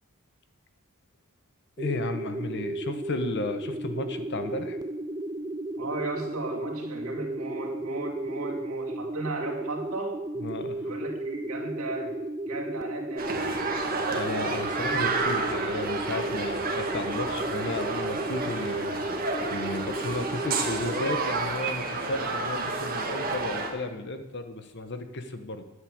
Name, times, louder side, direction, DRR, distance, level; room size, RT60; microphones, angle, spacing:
voice 1, 1.8-4.8 10.4-10.9 14.1-19.1 19.5-25.7, left 2 dB, 50° left, 8 dB, 1.2 m, -34 dB
sound 1, 1.8-21.0, right 1 dB, 15° right, 0.4 m, -34 dB
voice 2, 5.8-10.2 10.8-12.2 12.5-13.4, right 2 dB, 70° right, -1 dB, 2.8 m, -35 dB
sound 2, 13.2-23.7, right 3 dB, 40° right, 1.8 m, -30 dB
11.0 x 7.9 x 8.7 m, 1.0 s
head